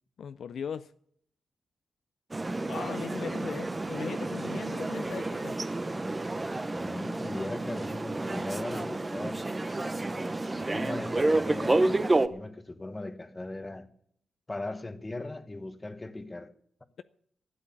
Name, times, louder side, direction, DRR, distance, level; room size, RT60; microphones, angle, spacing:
voice 1, 0.2-0.9 2.7-5.6, left 7 dB, 70° left, 0.5 m, -38 dB
sound 1, 2.3-12.3, right 2 dB, 20° right, 0.7 m, -30 dB
voice 2, 6.6-9.5 10.5-13.9 14.5-16.5, left 2 dB, 20° left, 1.1 m, -39 dB
12.0 x 9.7 x 9.9 m
wide cardioid pair, 125°, 0 cm